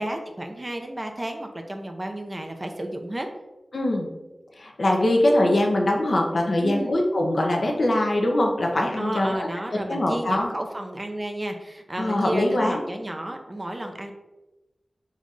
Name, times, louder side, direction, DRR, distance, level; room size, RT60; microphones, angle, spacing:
voice 1, 0.0-3.3 6.6-6.9 9.0-14.1, right 1 dB, 35° right, 4 dB, 0.7 m, -32 dB
voice 2, 3.7-4.1 4.6-10.5 12.0-12.8, left 1 dB, 70° left, 1 dB, 0.8 m, -22 dB
4.1 x 2.6 x 4.8 m, 1.0 s
cardioid pair, 45°, 0 cm